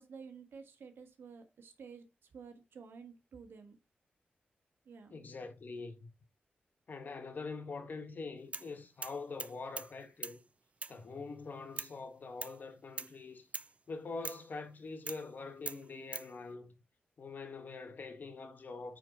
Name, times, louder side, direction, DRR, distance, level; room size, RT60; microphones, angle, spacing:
voice 1, 0.0-3.8 4.8-5.2, right 5 dB, 85° right, 1.7 m, -52 dB
voice 2, 5.1-6.1 6.9-10.4 10.9-13.5 13.9-16.7 17.2-19.0, left 4 dB, 55° left, 1.7 m, -44 dB
sound 1, 8.5-8.7 9.0-9.9 10.2-10.4 10.8-11.0 11.8-12.0 12.4-12.6 13.0-13.1 13.5-13.7 14.2-14.5 15.1-15.3 15.7-16.3, right 4 dB, 35° right, 0.5 m, -42 dB
9.3 x 4.6 x 3.9 m
wide cardioid pair, 100°, 4 cm